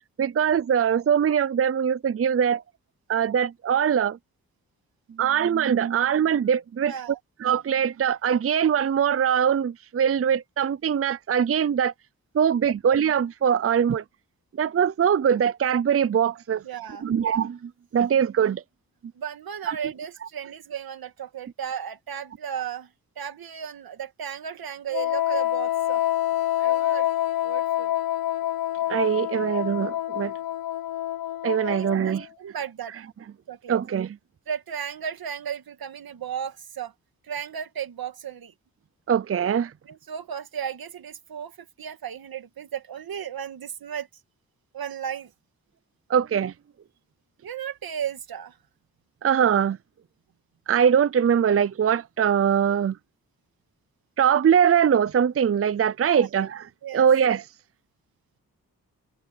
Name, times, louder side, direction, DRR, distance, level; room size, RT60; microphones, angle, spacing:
voice 1, 0.2-2.6 3.1-4.2 5.2-6.9 7.4-11.9 12.3-14.0 14.6-16.6 17.0-18.6 19.7-19.8 28.9-30.3 31.4-32.3 33.7-34.2 39.1-39.7 46.1-46.5 49.2-49.8 50.7-53.0 54.2-57.5, right 8 dB, 40° right, 0.6 m, -22 dB
voice 2, 6.9-7.2 16.6-17.1 19.1-22.9 23.2-26.0 26.6-27.1 27.4-27.9 31.7-33.0 33.5-33.8 34.5-36.9 37.2-38.5 39.9-44.1 44.7-45.3 47.4-48.6 56.0-56.3 56.8-57.1, right 8 dB, 90° right, 2.3 m, -35 dB
Wind instrument woodwind instrument, 24.9-32.3, left 13 dB, 85° left, 0.9 m, -27 dB
cardioid pair, 65°, 35 cm